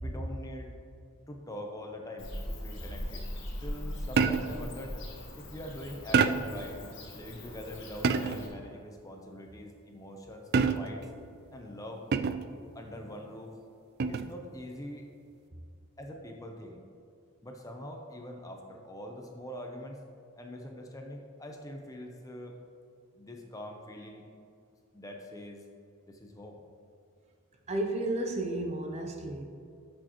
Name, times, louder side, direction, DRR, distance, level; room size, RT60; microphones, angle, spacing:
voice 1, 0.0-0.7 1.3-3.3 3.6-5.0 5.4-6.8 7.1-10.5 10.8-11.1 11.5-12.1 12.7-13.5 14.1-15.1 16.0-16.8 17.4-20.0 20.4-22.6 23.2-24.2 24.9-25.6 26.1-26.6, left 1 dB, 15° left, 2 dB, 0.7 m, -43 dB
Bird / Cricket, 2.2-8.5, left 1 dB, 55° left, 1.6 m, -40 dB
sound 1, 4.2-4.7 6.1-6.6 8.0-8.5 10.5-11.1 12.1-12.6 14.0-14.4, right 5 dB, 45° right, 0.3 m, -27 dB
voice 2, 27.7-29.4, right 1 dB, 30° right, 2 dB, 0.7 m, -32 dB
13.0 x 6.3 x 3.0 m, 2.5 s
head